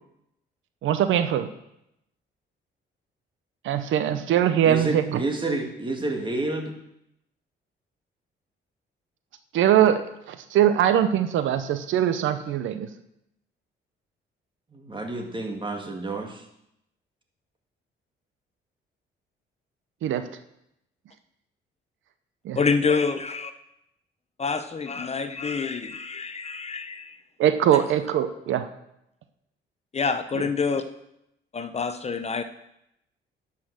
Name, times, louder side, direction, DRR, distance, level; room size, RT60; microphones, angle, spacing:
voice 1, 0.8-1.5 3.6-5.2 9.5-12.9 20.0-20.3 22.4-22.6 27.4-28.7, right 10 dB, 80° right, 11 dB, 0.7 m, -22 dB
voice 2, 4.6-6.7 14.7-16.4, right 2 dB, 25° right, 3 dB, 2.0 m, -29 dB
voice 3, 22.6-23.5 24.4-27.2 29.9-30.8 31.5-32.4, left 5 dB, 35° left, 10 dB, 0.7 m, -27 dB
10.5 x 5.9 x 6.5 m, 0.81 s
cardioid pair, 90°, 20 cm